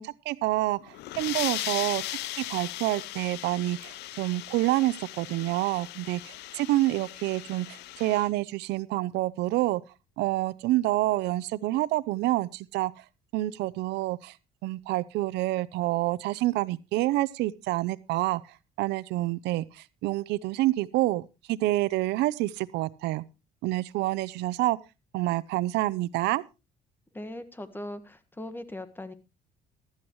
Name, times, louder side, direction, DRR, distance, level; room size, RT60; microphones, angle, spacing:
voice 1, 0.0-9.8 10.2-12.9 13.3-14.3 14.6-18.4 18.8-23.2 23.6-24.8 25.1-26.4, right 17 dB, 85° right, 0.7 m, -28 dB
sound 1, 0.8-8.3, left 16 dB, 85° left, 0.6 m, -38 dB
voice 2, 27.1-29.1, left 1 dB, 10° left, 1.5 m, -39 dB
15.0 x 13.0 x 3.1 m
cardioid pair, 110°, 17 cm